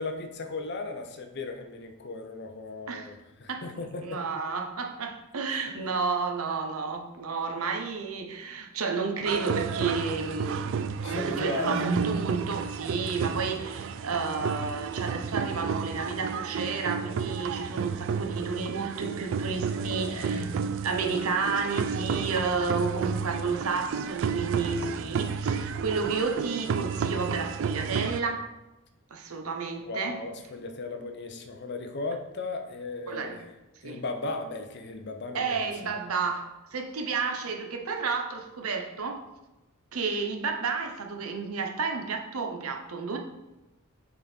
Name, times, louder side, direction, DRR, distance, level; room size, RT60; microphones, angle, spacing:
voice 1, 0.0-4.2 11.0-11.8 19.7-20.5 29.8-33.5 33.8-35.9, left 3 dB, 55° left, 6 dB, 0.7 m, -36 dB
voice 2, 4.0-28.5 29.1-30.2 33.1-33.4 33.8-34.0 35.3-39.2 39.9-43.2, right 4 dB, 85° right, 3 dB, 0.8 m, -31 dB
sound 1, 9.2-28.2, right 6 dB, 60° right, 0.3 m, -32 dB
6.7 x 3.7 x 4.3 m, 1.0 s
head